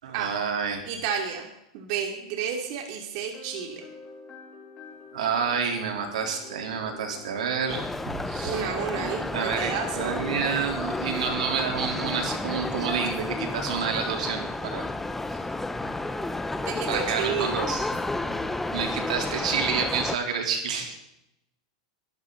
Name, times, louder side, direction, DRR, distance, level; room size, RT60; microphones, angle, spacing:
voice 1, 0.0-0.8 5.1-8.7 9.0-14.9 16.9-17.9 18.7-21.0, right 6 dB, 85° right, 2 dB, 3.5 m, -29 dB
voice 2, 0.8-1.5 1.7-3.9 8.4-10.1 16.6-17.7, right 7 dB, 55° right, 2 dB, 2.9 m, -31 dB
sound 1, 3.3-11.0, left 4 dB, 30° left, 4.0 m, -47 dB
sound 2, 7.7-20.2, left 2 dB, 5° left, 0.8 m, -31 dB
22.5 x 13.0 x 4.0 m, 0.83 s
supercardioid pair, 135°, 4 cm